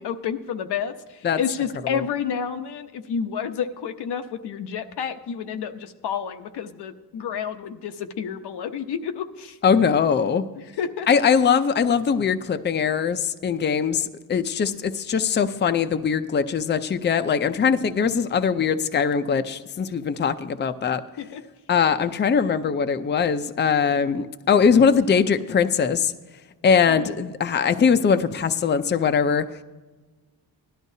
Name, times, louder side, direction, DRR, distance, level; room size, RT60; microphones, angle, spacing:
voice 1, 0.0-9.6 10.8-11.1 21.2-21.4 26.9-27.1, left 7 dB, 90° left, 7 dB, 0.9 m, -30 dB
voice 2, 9.6-10.4 11.1-21.0 21.7-26.1 26.6-29.5, left 6 dB, 30° left, 10 dB, 0.5 m, -21 dB
17.5 x 12.0 x 2.7 m, 1.2 s
wide cardioid pair, 130°, 39 cm